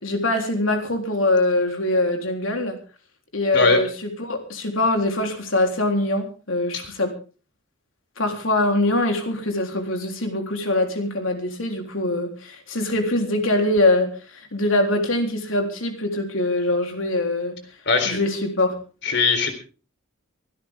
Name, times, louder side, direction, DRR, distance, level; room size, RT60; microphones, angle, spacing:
voice 1, 0.0-2.8 3.3-7.1 8.2-17.6 18.1-18.8, left 2 dB, 70° left, 4 dB, 3.7 m, -23 dB
voice 2, 17.9-18.2 19.0-19.6, left 4 dB, 55° left, 7 dB, 3.9 m, -20 dB
24.0 x 13.0 x 3.7 m, 0.37 s
head